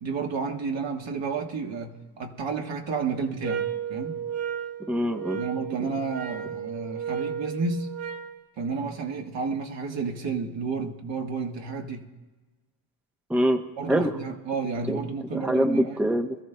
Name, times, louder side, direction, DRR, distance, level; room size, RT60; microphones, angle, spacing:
voice 1, 0.0-4.1 5.3-7.9 8.6-12.1 13.8-16.0, right 4 dB, 60° right, 3 dB, 1.7 m, -31 dB
sound 1, 3.4-8.4, right 8 dB, 80° right, 1.2 m, -33 dB
voice 2, 4.9-5.4 13.3-13.6 13.9-14.1 14.9-15.0 15.3-16.4, equal, 5° right, 5 dB, 0.8 m, -24 dB
25.0 x 14.0 x 2.3 m, 1.3 s
cardioid pair, 75°, 49 cm